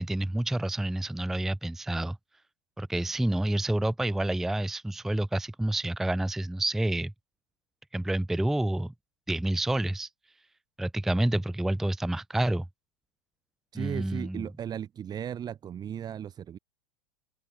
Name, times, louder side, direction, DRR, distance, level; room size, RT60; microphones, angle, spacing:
voice 1, 0.0-2.2 2.8-7.1 7.9-8.9 9.3-10.1 10.8-12.6 13.7-14.5, right 1 dB, ahead, 0.5 m, -28 dB
voice 2, 13.7-16.6, right 9 dB, 30° right, 4.6 m, -36 dB
open air
hypercardioid pair, 110°, 14 cm